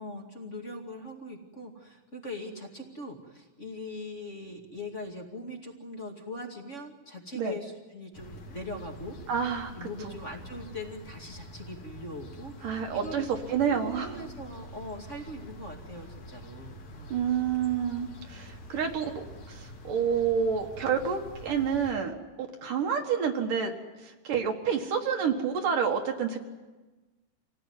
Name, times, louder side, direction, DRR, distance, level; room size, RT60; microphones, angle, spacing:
voice 1, 0.0-9.2 9.7-13.3 13.6-17.1, left 1 dB, 25° left, 2 dB, 2.1 m, -41 dB
sound 1, 8.1-21.9, equal, 55° left, 3.6 m, -46 dB
voice 2, 9.3-9.7 10.0-10.1 12.6-14.1 17.1-19.1 19.5-22.1 22.6-23.7 24.0-26.4, right 7 dB, 65° right, 3 dB, 3.2 m, -28 dB
27.0 x 17.5 x 9.7 m, 1.2 s
omnidirectional pair, 4.1 m